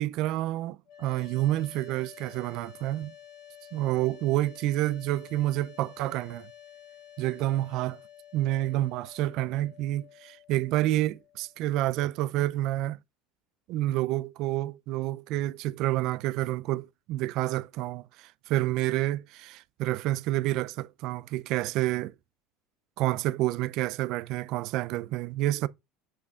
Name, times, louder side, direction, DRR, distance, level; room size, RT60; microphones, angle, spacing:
voice 1, 0.0-3.1 3.7-6.5 7.2-8.0 8.3-13.0 13.7-22.1 23.0-25.7, right 15 dB, 65° right, 0.4 m, -29 dB
sound 1, 0.9-12.0, left 10 dB, 65° left, 3.3 m, -51 dB
6.8 x 5.9 x 2.4 m
supercardioid pair, 105°, 0 cm